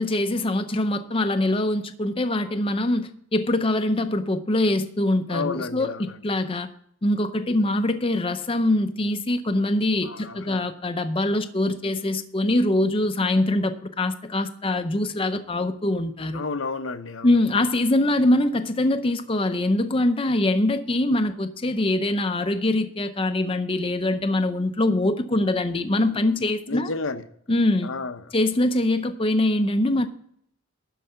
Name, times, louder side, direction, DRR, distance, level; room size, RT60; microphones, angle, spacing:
voice 1, 0.0-6.7 7.0-16.4 17.2-26.9 27.5-27.9 28.3-30.1, left 1 dB, 25° left, 0.6 m, -23 dB
voice 2, 5.3-6.2 10.0-10.7 16.3-17.4 26.7-27.3 27.8-28.3, left 4 dB, 70° left, 0.8 m, -31 dB
12.0 x 4.8 x 7.9 m
head